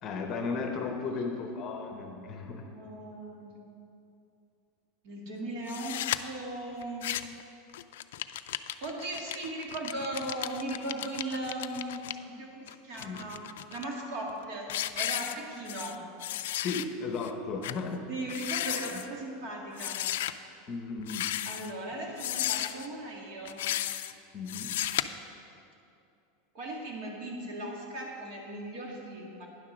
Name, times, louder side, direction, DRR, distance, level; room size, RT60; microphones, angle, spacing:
voice 1, 0.0-2.7 13.0-13.3 16.6-18.0 18.7-18.8 20.7-21.3 24.3-24.8, left 4 dB, 30° left, 3 dB, 0.9 m, -35 dB
voice 2, 1.0-1.9 2.7-3.5 5.0-5.9 6.2-7.0 8.6-16.0 18.1-20.0 21.5-23.6 26.5-29.5, right 1 dB, 50° right, -1 dB, 2.0 m, -38 dB
sound 1, 5.7-6.2 6.8-7.4 7.7-12.1 12.7-13.8 14.3-14.4 14.7-15.9 16.2-16.8 17.2-17.3 17.6-17.8 18.2-19.1 19.8-20.3 21.0-21.7 22.2-22.9 23.4-24.1 24.5-25.0, left 13 dB, 80° left, 0.3 m, -34 dB
9.9 x 7.3 x 6.2 m, 2.7 s
supercardioid pair, 165°, 0 cm